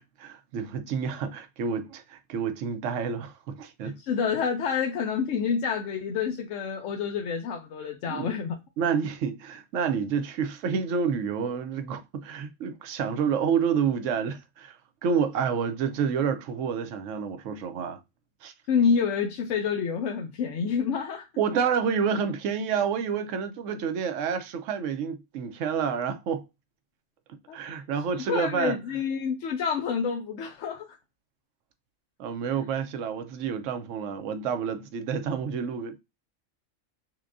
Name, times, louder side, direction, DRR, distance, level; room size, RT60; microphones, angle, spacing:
voice 1, 0.0-4.0 8.1-8.4 8.8-18.0 18.4-18.5 21.4-26.5 27.3-28.8 32.2-36.0, right 6 dB, 75° right, 1.0 m, -29 dB
voice 2, 3.8-8.6 18.7-21.3 27.5-27.8 28.1-31.0, left 6 dB, 75° left, 0.9 m, -28 dB
5.8 x 2.2 x 2.4 m
omnidirectional pair, 1.3 m